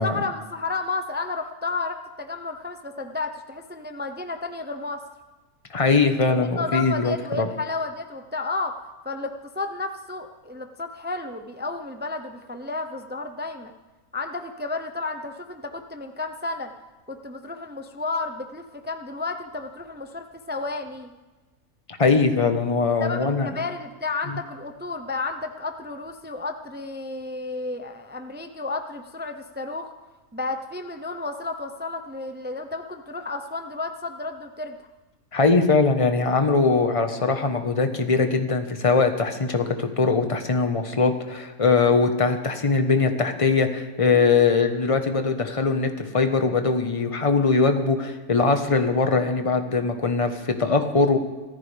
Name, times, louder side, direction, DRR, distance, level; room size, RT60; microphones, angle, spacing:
voice 1, 0.0-5.0 6.6-8.8 9.0-13.7 14.1-16.7 17.1-21.1 23.0-29.9 30.3-34.8, left 3 dB, 15° right, 6 dB, 0.4 m, -32 dB
voice 2, 5.7-7.5 22.0-23.5 35.3-51.2, left 4 dB, 25° left, 6 dB, 1.1 m, -21 dB
25.0 x 14.5 x 3.4 m, 1.2 s
omnidirectional pair, 1.6 m